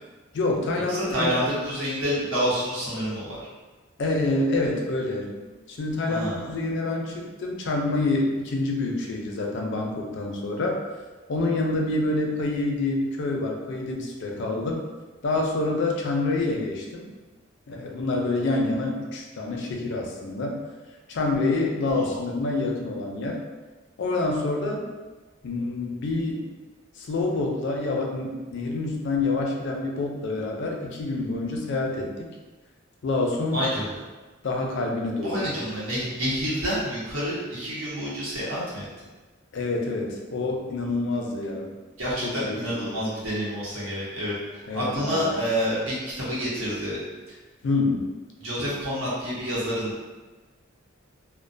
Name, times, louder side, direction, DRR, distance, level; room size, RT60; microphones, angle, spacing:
voice 1, 0.3-1.3 4.0-5.3 5.7-10.8 11.3-14.8 15.2-17.1 17.7-20.6 21.1-23.4 24.0-24.8 25.4-26.4 27.0-32.1 33.0-33.6 34.4-35.5 39.5-41.7 42.2-43.0 44.7-45.3 47.6-48.1, left 2 dB, 60° left, 0 dB, 0.4 m, -27 dB
voice 2, 0.9-3.4 6.1-6.4 21.9-22.2 33.5-33.9 35.2-38.9 42.0-47.0 47.3-47.4 48.4-50.0, equal, 90° right, -7 dB, 0.9 m, -28 dB
2.3 x 2.1 x 2.5 m, 1.3 s
head